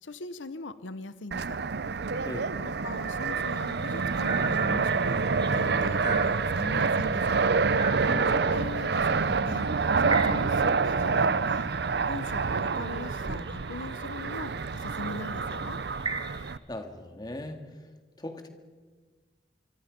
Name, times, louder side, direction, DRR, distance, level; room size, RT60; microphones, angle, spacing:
voice 1, 0.0-1.6 2.6-5.2 5.5-7.4 8.3-9.7 10.0-11.7 12.1-15.8, left 2 dB, 90° left, 13 dB, 1.0 m, -40 dB
Fixed-wing aircraft airplane, 1.3-16.6, right 4 dB, 60° right, 0.6 m, -27 dB
sound 1, 3.3-16.5, right 4 dB, 25° right, 1.6 m, -41 dB
voice 2, 16.7-17.6 18.2-18.5, left 1 dB, 20° left, 5 dB, 2.0 m, -38 dB
25.5 x 25.0 x 5.3 m, 1.4 s
head